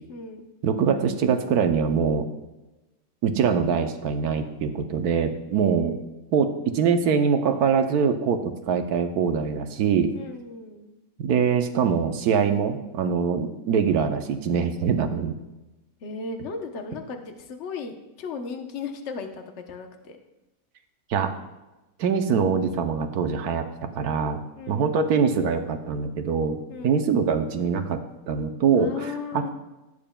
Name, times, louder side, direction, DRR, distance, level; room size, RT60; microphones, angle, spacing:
voice 1, 0.1-0.5 5.5-5.9 10.1-10.9 16.0-20.2 24.5-25.0 26.7-27.0 28.8-29.5, left 4 dB, 50° left, 4 dB, 1.1 m, -36 dB
voice 2, 0.6-2.3 3.2-5.9 6.3-10.1 11.2-15.3 21.1-21.3 22.0-24.4 24.7-26.6 26.8-29.5, right 6 dB, 80° right, 7 dB, 1.3 m, -23 dB
17.0 x 8.7 x 2.3 m, 1.0 s
omnidirectional pair, 1.6 m